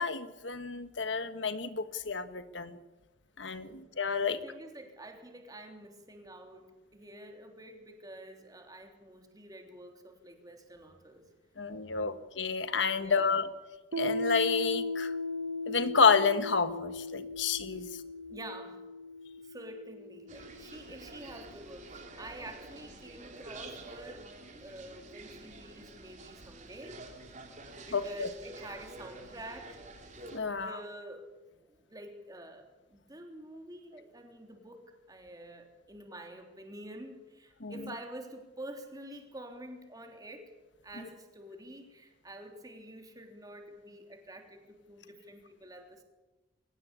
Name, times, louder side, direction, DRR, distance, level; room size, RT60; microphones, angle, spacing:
voice 1, 0.0-2.8 3.4-4.4 11.6-13.5 14.0-15.1 15.7-17.9 27.9-28.3 30.3-30.7 37.6-37.7, left 5 dB, 70° left, 11 dB, 1.4 m, -29 dB
voice 2, 4.2-11.3 11.7-12.0 13.0-13.3 18.3-18.8 19.4-24.3 24.6-27.0 27.8-29.8 30.5-31.3 31.6-40.5 40.8-46.0, right 1 dB, 20° right, 4 dB, 3.4 m, -48 dB
Piano, 13.9-21.2, left 2 dB, 90° right, 1.7 m, -37 dB
sound 1, 20.3-30.4, right 2 dB, 40° right, 3.9 m, -48 dB
23.0 x 18.0 x 8.5 m, 1.1 s
head